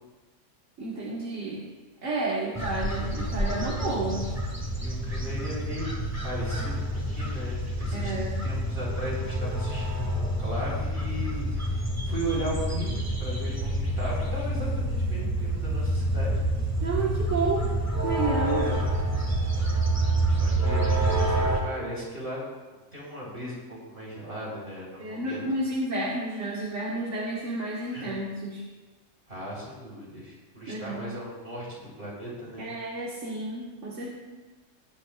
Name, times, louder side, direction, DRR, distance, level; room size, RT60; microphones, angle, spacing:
voice 1, 0.8-1.6 2.0-4.3 7.9-8.4 16.8-17.8 18.0-18.7 25.0-28.6 30.7-31.1 32.6-34.1, right 2 dB, 70° right, -4 dB, 1.9 m, -31 dB
sound 1, 2.5-21.6, right 1 dB, 10° right, 1.8 m, -28 dB
voice 2, 4.8-5.9 6.2-11.8 12.1-16.3 18.5-18.8 20.3-22.4 22.9-25.4 27.9-28.2 29.3-32.7, right 1 dB, 55° right, -5 dB, 4.7 m, -37 dB
20.0 x 10.5 x 2.4 m, 1.3 s
omnidirectional pair, 1.3 m